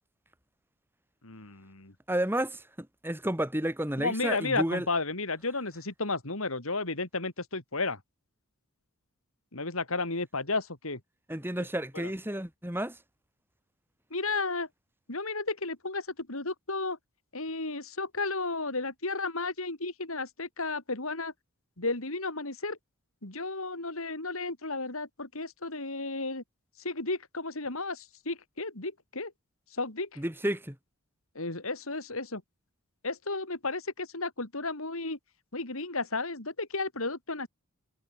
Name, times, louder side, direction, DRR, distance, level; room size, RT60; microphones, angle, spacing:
voice 1, 1.2-1.9 4.0-8.0 9.5-11.0 11.9-12.1 14.1-14.7 15.1-17.0 17.3-21.3 21.8-22.8 23.2-26.4 26.8-29.3 29.7-30.2 31.4-32.4 33.0-35.2 35.5-37.5, left 3 dB, 70° left, 3.8 m, -33 dB
voice 2, 2.1-4.9 11.3-13.0 30.2-30.8, right 1 dB, 10° right, 2.3 m, -31 dB
head